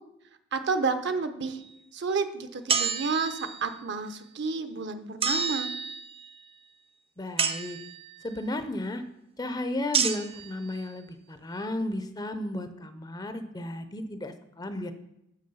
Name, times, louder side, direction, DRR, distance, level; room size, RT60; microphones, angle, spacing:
voice 1, 0.5-1.6 1.9-5.7, right 4 dB, 60° right, 9 dB, 0.7 m, -30 dB
sound 1, 2.7-3.7 5.2-6.3 7.4-8.1 9.9-10.5, right 6 dB, 30° right, 0.5 m, -29 dB
voice 2, 7.2-7.8 8.2-9.0 9.4-14.9, left 1 dB, 20° left, 10 dB, 0.5 m, -34 dB
7.4 x 6.5 x 5.5 m, 0.82 s
head